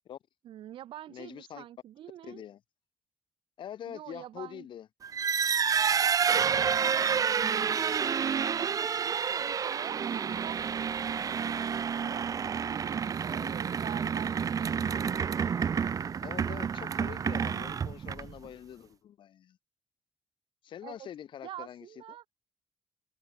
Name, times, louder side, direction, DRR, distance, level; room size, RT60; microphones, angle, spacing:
voice 1, 0.4-2.4 3.9-4.7 6.3-6.8 8.4-11.4 12.0-12.3 12.7-14.8 20.8-21.1 21.4-22.2, right 12 dB, 90° right, 2.8 m, -45 dB
voice 2, 1.1-1.6 2.2-2.6 3.6-4.9 13.3-13.5 16.1-19.6 20.6-21.9, left 10 dB, 70° left, 3.9 m, -44 dB
sound 1, 5.0-18.5, right 7 dB, 45° right, 0.8 m, -29 dB
cardioid pair, 130°, 9 cm